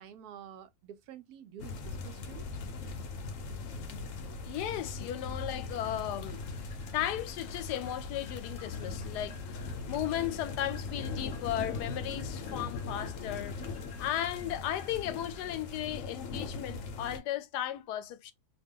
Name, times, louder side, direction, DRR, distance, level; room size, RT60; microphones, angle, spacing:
voice 1, 0.0-2.4, right 9 dB, 75° right, 1.1 m, -49 dB
sound 1, 1.6-17.2, left 4 dB, 65° left, 0.9 m, -40 dB
voice 2, 4.4-6.4 6.9-13.6 14.0-18.3, left 12 dB, 90° left, 1.1 m, -35 dB
sound 2, 5.7-15.4, left 3 dB, 25° left, 0.8 m, -56 dB
2.8 x 2.2 x 3.5 m
omnidirectional pair, 1.7 m